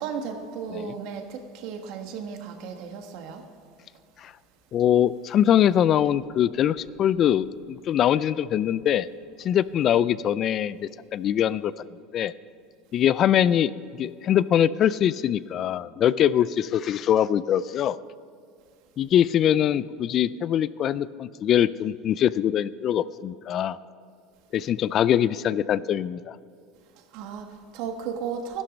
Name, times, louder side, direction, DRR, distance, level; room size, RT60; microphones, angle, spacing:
voice 1, 0.0-3.4 27.1-28.6, right 6 dB, 65° right, 5 dB, 1.5 m, -34 dB
voice 2, 4.7-9.1 9.4-11.7 12.1-12.3 12.9-18.0 19.0-23.8 24.5-26.4, left 10 dB, 40° left, 18 dB, 0.3 m, -23 dB
13.0 x 11.5 x 5.2 m, 2.3 s
supercardioid pair, 125°, 0 cm